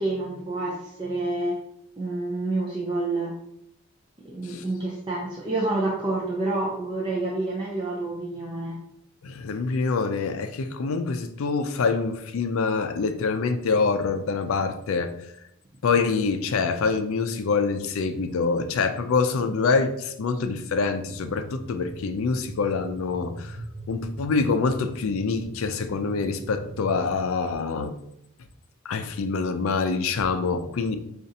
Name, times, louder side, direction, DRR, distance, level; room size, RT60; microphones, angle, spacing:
voice 1, 0.0-1.6 2.0-3.3 4.2-8.8, right 2 dB, 20° right, -4 dB, 0.4 m, -28 dB
voice 2, 9.2-15.1 15.8-23.6 23.9-27.9 28.8-31.0, left 4 dB, 75° left, 8 dB, 0.4 m, -25 dB
sound 1, 21.0-27.2, equal, 5° left, 1.1 m, -41 dB
5.1 x 2.4 x 2.7 m, 0.75 s
head